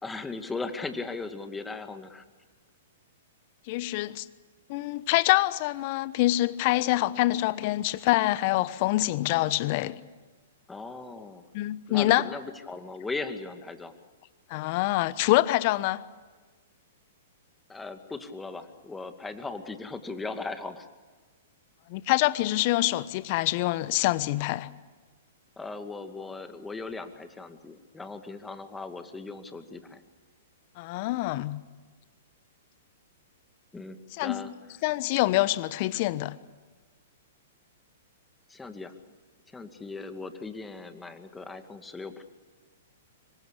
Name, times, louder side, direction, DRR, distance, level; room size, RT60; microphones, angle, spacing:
voice 1, 0.0-2.2 10.7-11.4 11.9-13.9 17.7-20.9 25.6-30.0 33.7-34.5 38.5-38.9 39.5-42.2, left 3 dB, 10° left, 2.3 m, -38 dB
voice 2, 3.7-4.3 4.7-10.0 11.5-12.2 14.5-16.0 21.9-24.7 30.8-31.6 34.2-34.4 34.8-36.4, left 17 dB, 45° left, 1.1 m, -25 dB
26.0 x 23.0 x 8.5 m
hypercardioid pair, 115°, 0 cm